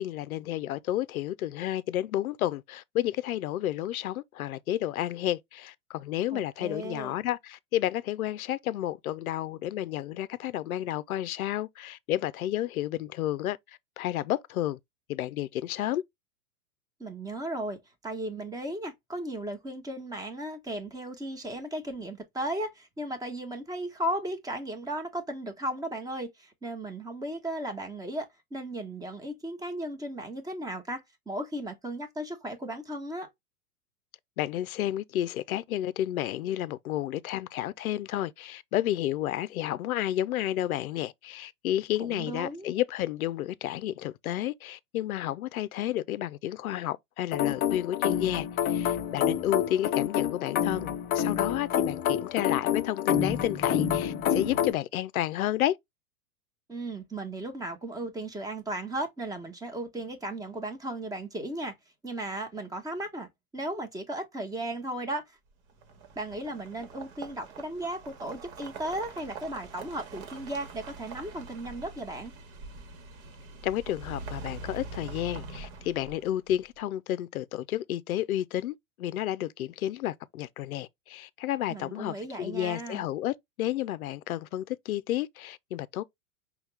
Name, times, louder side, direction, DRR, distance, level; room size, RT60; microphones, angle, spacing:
voice 1, 0.0-14.8 15.1-16.0 34.4-55.8 73.6-86.0, left 13 dB, 75° left, 0.6 m, -31 dB
voice 2, 6.3-7.1 17.0-33.3 42.0-42.7 56.7-61.7 62.0-65.4 66.2-72.3 81.7-83.0, right 1 dB, 10° right, 1.0 m, -36 dB
sound 1, 47.3-54.7, left 9 dB, 25° left, 0.5 m, -28 dB
sound 2, 65.7-76.5, right 3 dB, 50° right, 1.3 m, -44 dB
5.5 x 2.3 x 3.3 m
hypercardioid pair, 100°, 44 cm